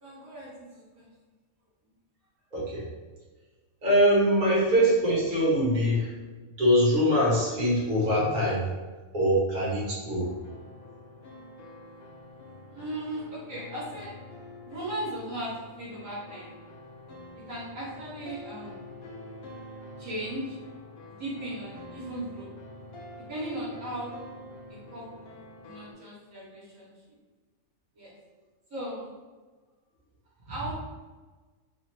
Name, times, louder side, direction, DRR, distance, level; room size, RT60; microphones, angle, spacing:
voice 1, 0.0-1.1 4.5-4.6 12.6-14.1 14.6-16.5 17.5-18.8 20.0-20.6 21.0-22.5 23.3-24.2 24.9-26.9 27.9-28.1 28.7-29.1 30.4-30.7, right 1 dB, 70° right, -7 dB, 1.5 m, -37 dB
voice 2, 2.5-2.8 3.8-6.1 6.6-8.6 9.1-10.3, equal, 35° right, -6 dB, 1.0 m, -23 dB
sound 1, 10.2-25.9, left 1 dB, 65° left, 0.6 m, -46 dB
3.2 x 2.4 x 3.0 m, 1.3 s
omnidirectional pair, 1.5 m